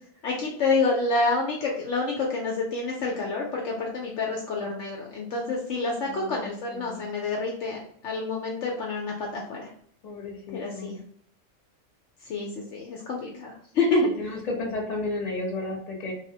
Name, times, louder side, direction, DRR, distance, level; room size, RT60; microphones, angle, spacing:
voice 1, 0.2-9.7 10.5-11.0 12.2-14.1, left 3 dB, 70° left, -1 dB, 0.8 m, -28 dB
voice 2, 6.0-7.1 10.0-11.0 14.2-16.1, left 2 dB, 35° left, -2 dB, 0.8 m, -33 dB
3.2 x 2.0 x 2.7 m, 0.62 s
omnidirectional pair, 1.4 m